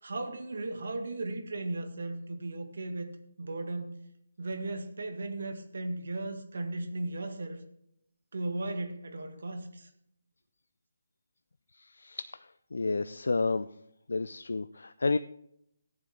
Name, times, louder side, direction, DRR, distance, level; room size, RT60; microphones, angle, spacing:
voice 1, 0.0-4.0 4.4-7.6 8.3-9.9, right 2 dB, 65° right, 7 dB, 1.7 m, -36 dB
voice 2, 11.7-13.7 14.1-15.2, left 3 dB, 75° left, 12 dB, 0.4 m, -31 dB
15.0 x 9.8 x 3.6 m, 0.76 s
figure-of-eight pair, 150°, 0 cm